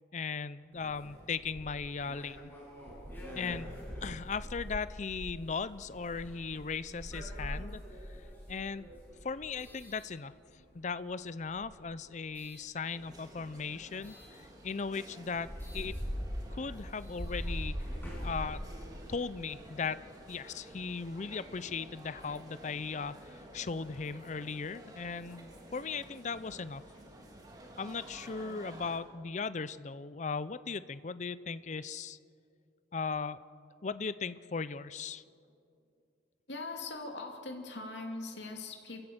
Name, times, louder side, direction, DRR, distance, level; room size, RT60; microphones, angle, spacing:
voice 1, 0.1-2.5 3.4-3.7 4.0-7.8 8.5-8.9 9.2-10.3 10.7-15.5 15.7-16.0 16.5-17.8 18.2-18.6 19.1-26.8 27.8-32.2 32.9-33.4 33.8-35.2, left 5 dB, 40° left, 15 dB, 0.5 m, -38 dB
sound 1, 0.7-10.8 11.4-12.6 14.0-14.3 14.8-14.9 15.2-19.4, equal, 10° left, 6.7 m, -42 dB
sound 2, 12.9-29.0, right 1 dB, 20° right, 2.6 m, -52 dB
voice 2, 36.5-39.0, left 3 dB, 75° left, 3 dB, 2.7 m, -41 dB
29.0 x 15.0 x 7.9 m, 2.5 s
head